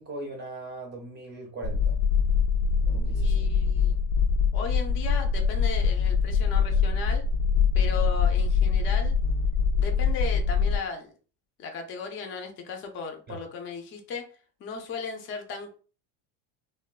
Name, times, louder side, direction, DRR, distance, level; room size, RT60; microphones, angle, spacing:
voice 1, 0.0-2.0 2.9-3.5 13.3-13.4, right 2 dB, 25° right, 0.5 m, -39 dB
sound 1, 1.6-10.8, left 5 dB, 80° left, 0.5 m, -24 dB
voice 2, 3.1-4.0 4.5-7.2 7.7-9.2 9.8-11.1 11.6-14.3 14.6-15.7, left 4 dB, 30° left, 0.4 m, -36 dB
3.5 x 2.2 x 2.3 m
cardioid pair, 160°, 44 cm